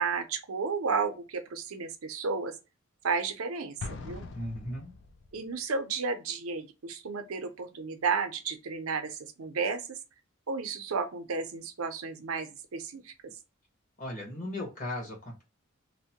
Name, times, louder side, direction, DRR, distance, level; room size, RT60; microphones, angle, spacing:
voice 1, 0.0-2.5 3.0-4.3 5.3-10.0 10.5-13.1, right 5 dB, 90° right, 0.6 m, -32 dB
Explosion, 3.8-5.5, left 4 dB, 55° left, 0.4 m, -42 dB
voice 2, 4.3-4.9 14.0-15.4, left 1 dB, 40° left, 1.2 m, -37 dB
2.9 x 2.1 x 2.8 m
head